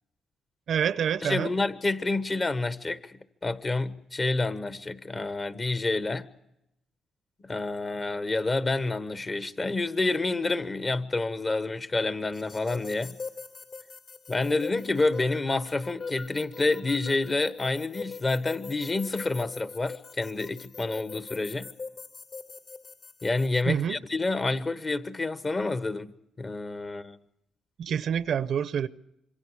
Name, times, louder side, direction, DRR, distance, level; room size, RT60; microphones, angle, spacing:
voice 1, 0.7-1.5 23.6-24.0 27.8-28.9, right 8 dB, 65° right, 0.8 m, -27 dB
voice 2, 1.2-6.3 7.4-13.2 14.3-21.7 23.2-26.1 26.4-27.2, left 3 dB, 30° left, 1.2 m, -28 dB
sound 1, 12.3-23.6, left 4 dB, 60° left, 3.7 m, -42 dB
27.0 x 23.5 x 4.8 m
cardioid pair, 90°, 0 cm